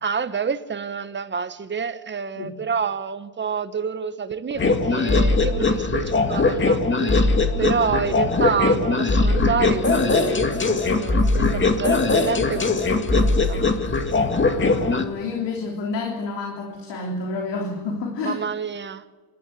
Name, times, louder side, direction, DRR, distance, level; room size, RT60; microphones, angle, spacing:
voice 1, 0.0-7.2 7.6-13.6 18.2-19.0, right 6 dB, 25° right, 11 dB, 1.3 m, -28 dB
sound 1, 4.6-15.0, left 3 dB, 25° left, 2.2 m, -20 dB
voice 2, 14.4-18.4, left 3 dB, 60° left, 1 dB, 3.7 m, -30 dB
27.0 x 13.5 x 8.3 m, 1.4 s
supercardioid pair, 100°, 47 cm